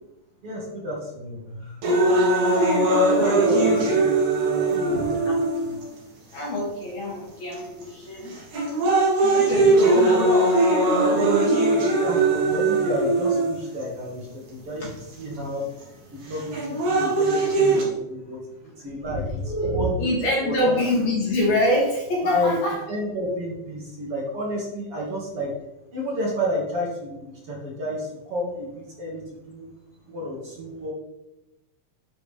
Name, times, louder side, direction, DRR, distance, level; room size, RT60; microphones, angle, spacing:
voice 1, 0.4-1.8 3.4-3.8 4.5-5.3 5.6-5.8 9.4-9.7 12.0-14.9 15.1-15.7 16.1-19.4 19.7-20.1 20.4-20.7 22.2-22.6 22.9-25.5 25.9-29.7 30.1-30.9, equal, 50° right, -3 dB, 3.0 m, -31 dB
sound 1, 1.8-5.8 6.6-6.7 7.5-7.8 8.3-13.8 14.8-14.9 16.3-17.8, right 2 dB, 70° right, 3.8 m, -20 dB
voice 2, 3.1-4.0 4.9-5.4 6.3-8.3 9.2-10.6 19.0-22.8, left 1 dB, 60° left, -4 dB, 3.7 m, -26 dB
10.0 x 7.9 x 3.5 m, 0.95 s
omnidirectional pair, 3.4 m